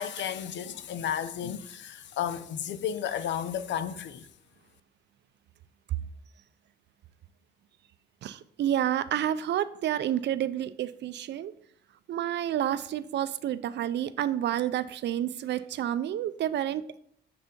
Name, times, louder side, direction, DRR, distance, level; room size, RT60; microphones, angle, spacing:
voice 1, 0.0-4.3, left 9 dB, 65° left, 0.5 m, -33 dB
voice 2, 8.2-11.5 12.1-17.0, right 11 dB, 60° right, 0.4 m, -29 dB
6.8 x 3.3 x 5.2 m
cardioid pair, 90°, 20 cm